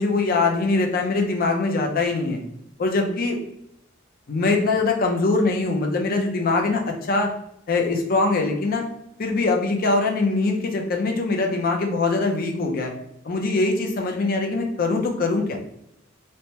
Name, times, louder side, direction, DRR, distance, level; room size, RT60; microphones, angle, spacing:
voice 1, 0.0-2.4 2.8-3.4 4.3-7.3 7.7-8.8 9.2-12.9 13.2-15.6, left 3 dB, 50° left, 2 dB, 0.6 m, -22 dB
3.2 x 2.1 x 2.8 m, 0.77 s
head